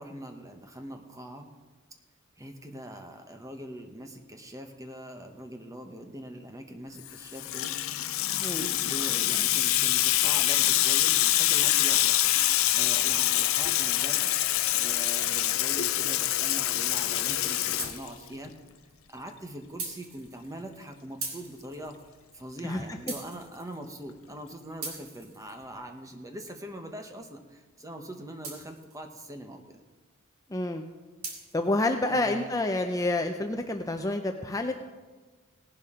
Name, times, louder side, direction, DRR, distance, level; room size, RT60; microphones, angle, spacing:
voice 1, 0.0-1.5 2.4-7.7 8.4-14.3 14.7-18.5 19.1-22.0 22.3-29.8 32.1-32.5, right 1 dB, 15° right, 5 dB, 1.0 m, -42 dB
Water tap faucet / Sink (filling or washing), 7.1-18.5, left 14 dB, 70° left, 0.5 m, -25 dB
sound 1, 16.6-17.2 17.8-18.5 18.9-19.0 19.8-20.8 21.2-22.2 23.1-24.0 24.8-26.0 28.4-29.1 31.2-31.7, right 4 dB, 75° right, 2.5 m, -41 dB
voice 2, 22.6-23.0 30.5-30.8 31.5-34.7, left 2 dB, 15° left, 5 dB, 0.5 m, -28 dB
18.0 x 11.0 x 3.7 m, 1.3 s
head